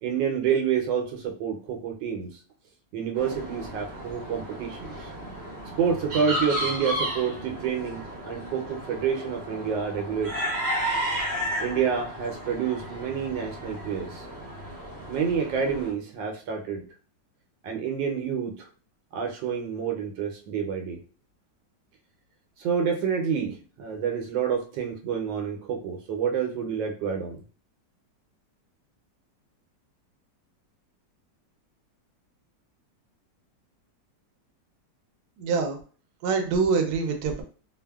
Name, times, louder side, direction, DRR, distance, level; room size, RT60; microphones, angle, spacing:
voice 1, 0.0-2.3 2.9-5.1 5.8-10.3 11.6-14.2 15.1-16.8 17.6-18.7 19.1-21.0 22.6-27.4, right 7 dB, 85° right, 1 dB, 1.3 m, -28 dB
sound 1, 3.2-15.9, equal, 55° right, 0.7 m, -33 dB
voice 2, 35.4-35.8 36.2-37.4, right 5 dB, 70° right, 4 dB, 1.0 m, -25 dB
3.3 x 2.0 x 2.2 m, 0.38 s
omnidirectional pair, 1.9 m